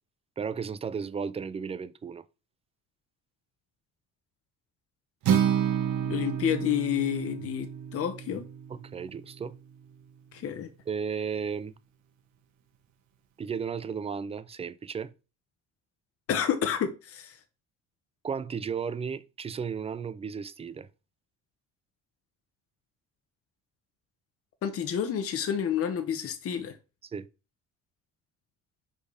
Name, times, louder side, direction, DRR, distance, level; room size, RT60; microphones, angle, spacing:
voice 1, 0.4-2.2 8.7-9.6 10.9-11.7 13.4-15.1 18.2-20.9 27.1-27.3, right 6 dB, 20° right, 0.4 m, -34 dB
Acoustic guitar, 5.2-9.5, right 8 dB, 65° right, 1.4 m, -29 dB
voice 2, 6.0-8.5 10.3-10.7 16.3-17.4 24.6-26.8, left 9 dB, 50° left, 1.0 m, -29 dB
5.2 x 4.3 x 4.9 m
cardioid pair, 125°, 31 cm